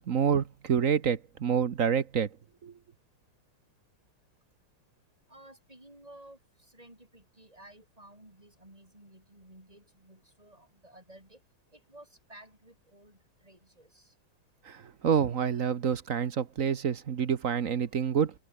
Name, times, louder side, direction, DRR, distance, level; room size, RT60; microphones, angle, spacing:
voice 1, 0.0-2.3 2.6-2.7 14.6-18.3, right 7 dB, 50° right, 1.2 m, -28 dB
voice 2, 5.3-6.4 6.7-11.4 11.7-14.1, right 1 dB, 15° right, 7.6 m, -54 dB
omnidirectional pair, 2.2 m